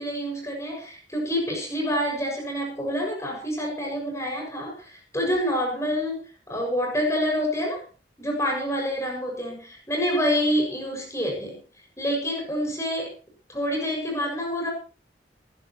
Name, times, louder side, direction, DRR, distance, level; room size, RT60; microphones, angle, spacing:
voice 1, 0.0-7.8 8.2-11.6 12.0-13.1 13.5-14.7, equal, 15° left, 0 dB, 6.9 m, -27 dB
20.5 x 16.0 x 3.2 m, 0.37 s
head